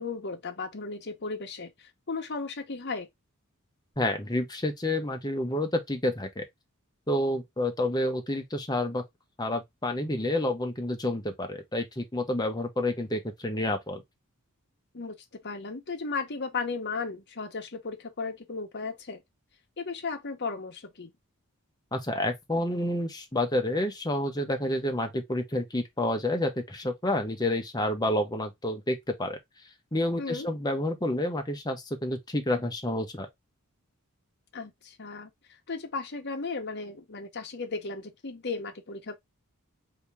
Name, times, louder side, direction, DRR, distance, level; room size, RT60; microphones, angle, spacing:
voice 1, 0.0-3.1 14.9-15.2 15.4-19.2 19.8-21.1 30.2-30.5 34.5-35.3 35.7-39.1, left 4 dB, 50° left, 0.9 m, -35 dB
voice 2, 4.0-6.4 7.1-9.0 9.4-14.0 21.9-29.4 29.9-33.3, left 1 dB, 20° left, 0.8 m, -29 dB
4.3 x 2.8 x 3.4 m
head